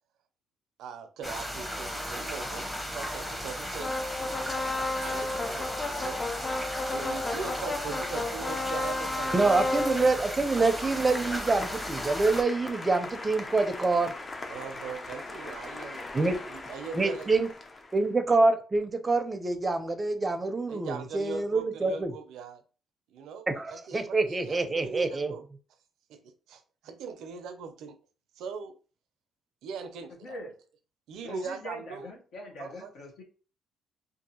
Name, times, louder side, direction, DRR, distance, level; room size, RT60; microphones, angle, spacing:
voice 1, 0.8-2.7 2.9-3.9 5.0-6.2 6.9-9.9 14.5-17.3 20.7-22.6 23.1-25.4 26.1-27.9 28.4-28.8 29.6-30.4 31.1-32.1 32.6-32.9, right 6 dB, 85° right, 8 dB, 0.4 m, -40 dB
sound 1, 1.2-12.4, equal, 10° left, 0.8 m, -36 dB
sound 2, 3.8-18.0, left 2 dB, 35° left, 0.4 m, -35 dB
voice 2, 9.3-14.1 16.1-16.4 16.9-17.5 17.9-22.1 23.5-25.3, right 3 dB, 25° right, 7 dB, 0.5 m, -26 dB
voice 3, 31.2-33.2, left 1 dB, 75° left, 0 dB, 0.9 m, -42 dB
2.6 x 2.4 x 2.7 m, 0.36 s
cardioid pair, 90°, 0 cm